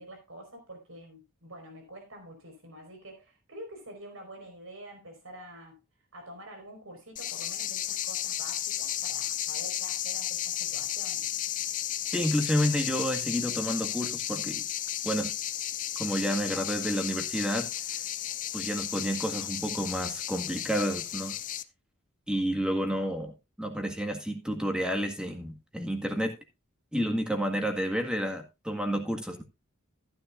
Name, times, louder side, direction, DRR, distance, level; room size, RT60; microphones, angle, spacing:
voice 1, 0.0-5.8 6.1-11.3, right 1 dB, 75° right, 4.9 m, -47 dB
sound 1, 7.2-21.6, left 12 dB, 40° left, 0.6 m, -33 dB
voice 2, 12.1-14.6 15.0-15.3 16.0-17.7 18.5-21.4 22.3-26.4 26.9-29.4, equal, 5° right, 1.8 m, -30 dB
14.5 x 10.0 x 2.5 m
head